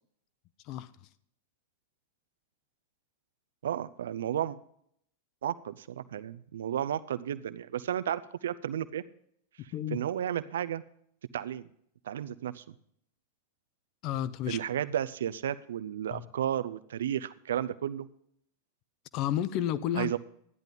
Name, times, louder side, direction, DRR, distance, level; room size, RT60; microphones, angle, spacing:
voice 1, 3.6-4.6 5.4-9.0 9.9-10.8 11.3-11.7 12.1-12.6 14.5-18.1 20.0-20.2, right 10 dB, 60° right, 13 dB, 0.5 m, -33 dB
voice 2, 14.0-14.6 16.1-16.3 19.1-20.1, left 11 dB, 40° left, 16 dB, 0.6 m, -31 dB
13.5 x 10.5 x 3.8 m, 0.68 s
figure-of-eight pair, 90°, 0 cm